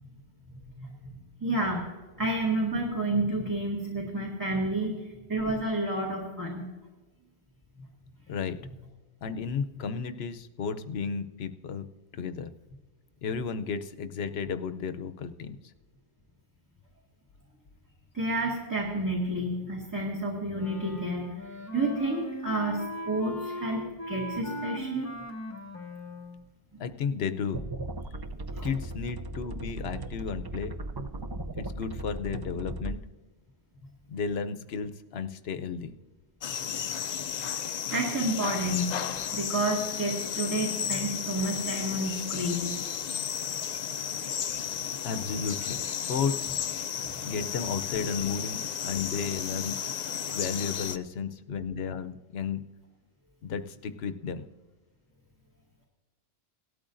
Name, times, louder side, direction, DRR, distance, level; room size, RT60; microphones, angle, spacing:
voice 1, 0.8-1.2 1.4-1.8 2.2-5.0 5.3-6.7 18.1-21.4 21.7-22.8 23.1-25.1 28.5-28.7 37.9-39.0 39.3-42.7 44.2-44.3, right 1 dB, 15° right, -4 dB, 2.0 m, -30 dB
voice 2, 8.3-8.6 9.2-11.9 12.1-12.5 13.2-15.6 26.8-27.6 28.6-30.8 31.6-33.0 34.1-35.9 45.0-46.6 47.2-49.8 50.3-52.6 53.4-54.4, left 6 dB, 70° left, 10 dB, 0.9 m, -33 dB
Wind instrument woodwind instrument, 20.5-26.4, left 1 dB, 15° left, 1.1 m, -38 dB
sound 1, 27.5-32.9, right 2 dB, 40° right, 0.3 m, -37 dB
sound 2, 36.4-51.0, left 8 dB, 55° left, 0.5 m, -33 dB
18.0 x 12.5 x 2.6 m, 1.2 s
omnidirectional pair, 1.1 m